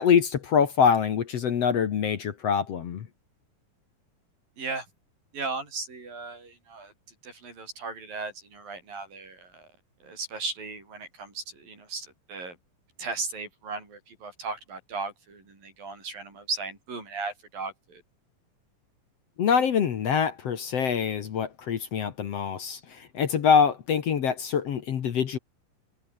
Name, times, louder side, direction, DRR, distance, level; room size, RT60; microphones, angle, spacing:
voice 1, 0.0-3.1 19.4-25.4, left 7 dB, 55° left, 2.2 m, -24 dB
voice 2, 4.6-4.9 5.3-6.9 7.2-9.6 10.0-12.6 13.0-18.0, right 4 dB, 80° right, 9.5 m, -36 dB
omnidirectional pair, 4.0 m